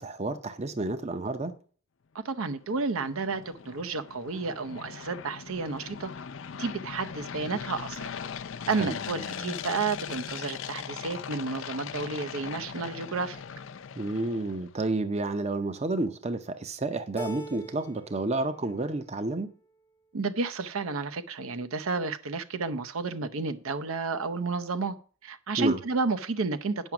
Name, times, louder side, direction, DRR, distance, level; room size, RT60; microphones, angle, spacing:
voice 1, 0.0-1.5 8.8-8.9 14.0-19.5 25.6-25.8, right 2 dB, 30° right, 0.6 m, -30 dB
voice 2, 2.1-6.1 6.5-8.1 8.7-13.4 20.1-24.9 25.2-26.9, right 4 dB, 75° right, 0.7 m, -31 dB
sound 1, 2.4-14.7, left 7 dB, 60° left, 0.5 m, -40 dB
Keyboard (musical), 17.2-18.3 18.6-19.3, right 1 dB, 10° left, 0.6 m, -42 dB
9.0 x 6.0 x 5.8 m
head